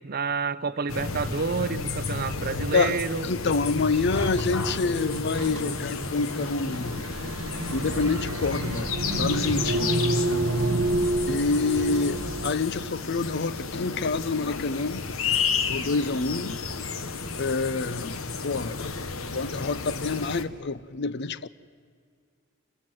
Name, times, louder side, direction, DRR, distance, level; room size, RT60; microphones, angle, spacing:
voice 1, 0.0-3.3, right 5 dB, 45° right, 0.6 m, -29 dB
sound 1, 0.9-20.4, left 4 dB, 90° left, 1.1 m, -32 dB
voice 2, 2.7-7.1 7.7-10.5 11.3-15.1 15.7-16.6 17.4-18.2 18.4-18.9 19.3-21.5, left 4 dB, 55° left, 0.6 m, -27 dB
sound 2, 3.8-12.5, right 2 dB, 85° right, 0.9 m, -29 dB
27.5 x 15.0 x 7.8 m
head